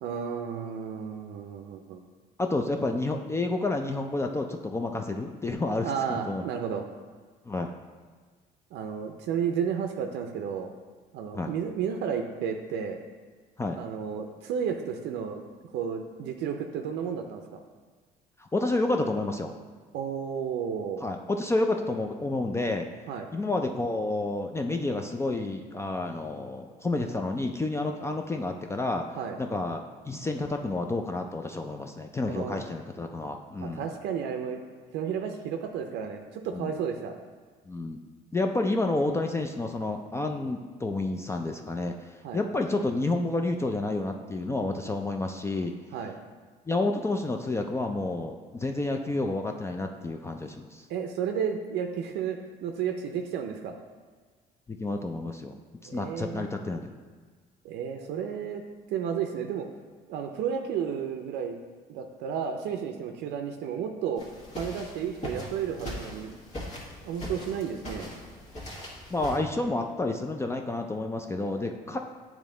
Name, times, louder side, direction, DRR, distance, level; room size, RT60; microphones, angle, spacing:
voice 1, 0.0-2.0 5.8-6.8 8.7-10.7 11.1-13.0 13.7-17.6 19.9-21.1 23.1-23.3 29.2-29.4 32.2-32.6 33.6-34.6 34.9-37.1 42.2-42.4 45.9-46.2 50.9-53.8 55.9-56.5 57.6-58.6 58.9-59.7 60.1-61.6 61.9-64.3 64.6-66.3 67.0-68.1, right 7 dB, 80° right, 4 dB, 0.5 m, -32 dB
voice 2, 2.4-6.4 7.5-7.7 11.3-11.5 13.6-13.8 18.4-19.5 21.0-22.9 23.3-29.8 30.1-33.9 36.5-36.7 37.7-38.0 38.3-45.7 46.7-50.8 54.8-55.6 55.8-56.9 69.1-72.0, left 2 dB, 15° left, 4 dB, 0.3 m, -30 dB
sound 1, 64.2-69.4, left 1 dB, 40° left, 1.5 m, -40 dB
8.4 x 3.0 x 3.7 m, 1.5 s
cardioid pair, 110°, 17 cm